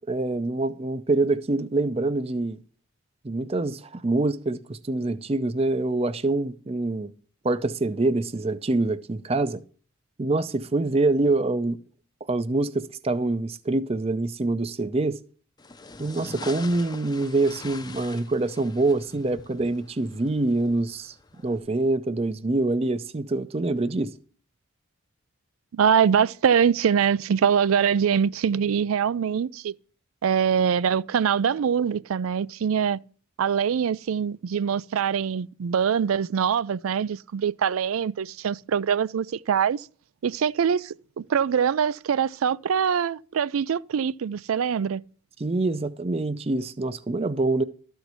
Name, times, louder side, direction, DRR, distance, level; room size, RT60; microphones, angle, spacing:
voice 1, 0.0-2.6 3.2-7.1 7.4-9.6 10.2-11.8 12.3-15.2 16.0-21.1 21.4-24.1 45.4-47.6, right 2 dB, 30° right, 0.5 m, -25 dB
sound 1, 15.6-21.6, left 3 dB, 20° left, 0.6 m, -44 dB
voice 2, 25.7-29.7 30.2-33.0 33.4-39.9 40.2-45.0, right 7 dB, 85° right, 0.4 m, -23 dB
13.0 x 4.5 x 8.1 m
head